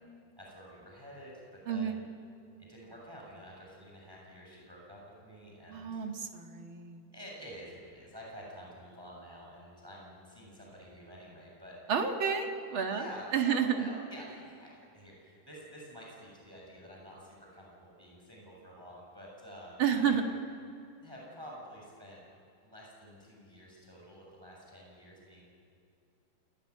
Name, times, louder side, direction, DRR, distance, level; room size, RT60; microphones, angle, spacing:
voice 1, 0.4-2.1 2.6-6.0 7.1-11.8 12.9-20.2 21.0-22.2 22.6-25.4, equal, 5° right, -2 dB, 6.9 m, -49 dB
voice 2, 1.7-2.0 5.7-7.0 11.9-13.1 13.3-13.9 19.8-20.2, right 7 dB, 45° right, 4 dB, 2.0 m, -30 dB
28.5 x 19.0 x 9.8 m, 2.6 s
omnidirectional pair, 4.3 m